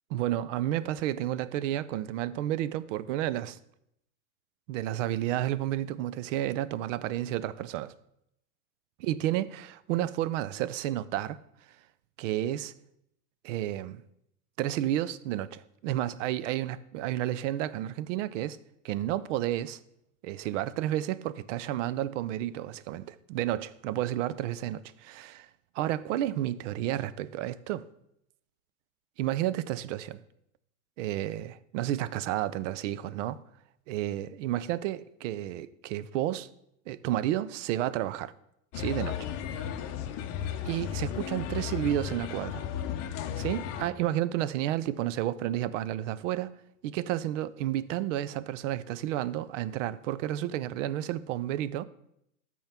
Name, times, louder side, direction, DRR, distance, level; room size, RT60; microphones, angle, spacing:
voice 1, 0.1-3.6 4.7-7.9 9.0-11.4 12.2-12.7 13.4-14.0 14.6-18.6 18.8-19.8 20.2-25.5 25.7-27.9 29.2-30.2 31.0-33.4 33.9-36.5 36.9-38.3 38.7-39.3 40.6-42.6 43.4-46.5 46.8-51.8, right 13 dB, 60° right, 0.5 m, -31 dB
sound 1, 38.7-43.9, left 9 dB, 35° left, 0.7 m, -34 dB
13.5 x 4.6 x 3.5 m
supercardioid pair, 135°, 44 cm